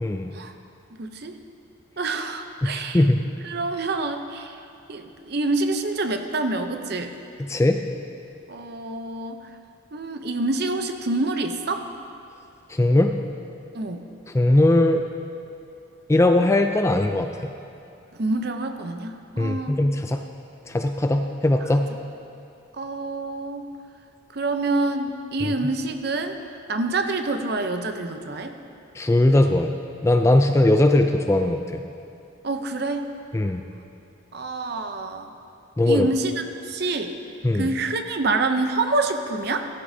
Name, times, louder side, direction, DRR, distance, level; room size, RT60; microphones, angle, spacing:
voice 1, 0.0-0.3 2.6-3.2 7.4-7.8 12.7-13.1 14.3-15.0 16.1-17.3 19.4-20.2 20.7-21.9 25.4-25.5 28.9-29.8 30.0-31.8 33.3-33.6 35.8-36.1 37.4-37.7, left 1 dB, 15° left, 5 dB, 0.3 m, -19 dB
voice 2, 1.0-1.4 2.0-3.0 3.4-4.6 4.9-7.1 8.5-9.4 9.9-11.9 13.7-14.0 18.2-19.8 22.8-23.7 24.3-26.4 26.7-28.5 32.4-33.1 34.3-35.3 35.8-36.3 36.6-37.1 37.5-39.7, right 2 dB, 50° right, 6 dB, 0.6 m, -27 dB
14.5 x 13.5 x 2.7 m, 2.6 s
head